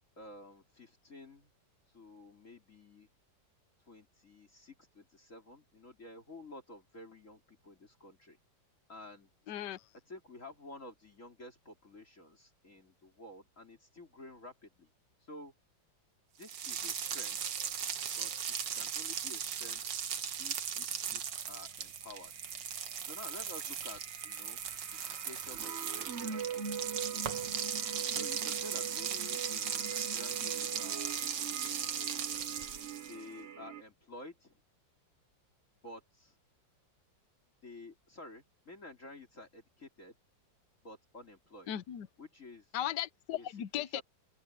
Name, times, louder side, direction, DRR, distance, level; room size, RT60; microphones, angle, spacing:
voice 1, 0.2-1.5 1.9-3.1 3.9-8.4 8.9-9.3 10.1-14.9 15.2-15.5 16.4-17.6 18.2-18.3 18.6-20.1 20.4-22.3 23.1-24.6 24.9-26.8 28.1-31.1 33.1-34.6 35.8-36.4 37.6-40.1 40.8-41.7 42.2-42.8 43.4-43.5 43.7-44.0, left 2 dB, 40° left, 3.7 m, -51 dB
voice 2, 9.5-9.8 41.7-42.1 42.7-44.0, left 11 dB, 70° left, 1.5 m, -37 dB
sound 1, 16.4-33.2, right 8 dB, 75° right, 2.0 m, -38 dB
sound 2, 17.1-17.7 22.0-33.8, right 7 dB, 45° right, 1.1 m, -43 dB
omnidirectional pair, 2.0 m